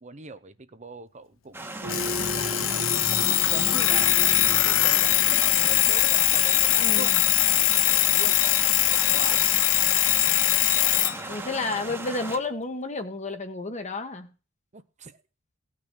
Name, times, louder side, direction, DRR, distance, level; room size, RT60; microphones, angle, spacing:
voice 1, 0.0-7.1 7.5-9.5 10.8-11.5 12.0-12.1 14.7-15.2, right 4 dB, 35° right, 11 dB, 0.8 m, -42 dB
sound 1, 1.5-12.4, right 2 dB, 10° right, 1.4 m, -37 dB
sound 2, 1.8-6.4, right 1 dB, 80° right, 2.4 m, -36 dB
Alarm, 1.9-11.2, left 14 dB, 80° left, 0.7 m, -22 dB
voice 2, 6.8-7.2 11.3-14.3, left 3 dB, 35° left, 8 dB, 1.4 m, -31 dB
17.5 x 6.1 x 6.1 m, 0.35 s
head